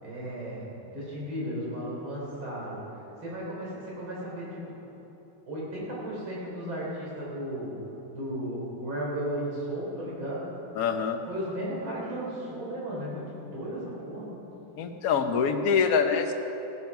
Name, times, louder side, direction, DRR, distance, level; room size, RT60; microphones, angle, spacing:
voice 1, 0.0-2.8 3.2-4.6 5.5-7.8 8.1-10.6 11.3-14.3, right 1 dB, 80° right, -5 dB, 4.7 m, -35 dB
voice 2, 10.8-11.2 14.8-16.3, left 6 dB, 55° left, 5 dB, 1.2 m, -25 dB
16.5 x 9.9 x 6.0 m, 3.0 s
omnidirectional pair, 2.1 m